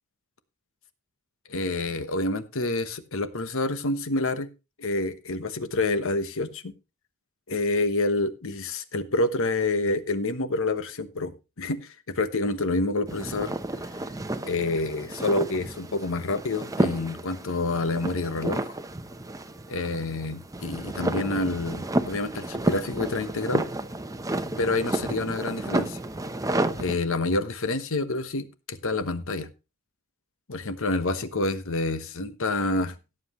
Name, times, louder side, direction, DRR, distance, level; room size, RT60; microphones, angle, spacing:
voice 1, 1.5-4.5 4.8-6.7 7.5-13.6 14.4-18.8 19.7-23.7 24.6-26.0 26.8-29.5 30.5-32.9, left 2 dB, 65° left, 1.1 m, -28 dB
sound 1, 13.1-27.0, right 1 dB, 15° right, 0.8 m, -31 dB
17.0 x 7.7 x 3.1 m
head